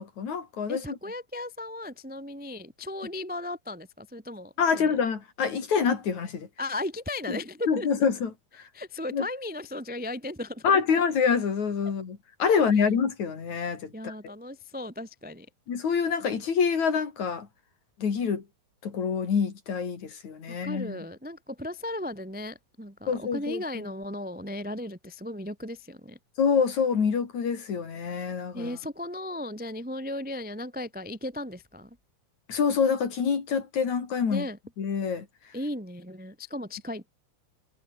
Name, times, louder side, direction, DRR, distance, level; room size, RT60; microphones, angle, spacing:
voice 1, 0.0-0.8 4.6-6.5 7.7-8.3 8.6-8.7 9.1-9.3 10.6-14.3 15.7-17.5 18.0-18.4 18.8-21.0 23.1-23.9 26.4-28.7 32.5-34.5 34.8-35.3, left 6 dB, 50° left, 4.3 m, -26 dB
voice 2, 0.7-5.0 6.6-7.9 8.7-10.8 13.9-15.5 20.5-26.2 28.5-32.0 34.3-34.6 35.5-37.1, left 1 dB, 10° right, 0.5 m, -36 dB
omnidirectional pair, 4.4 m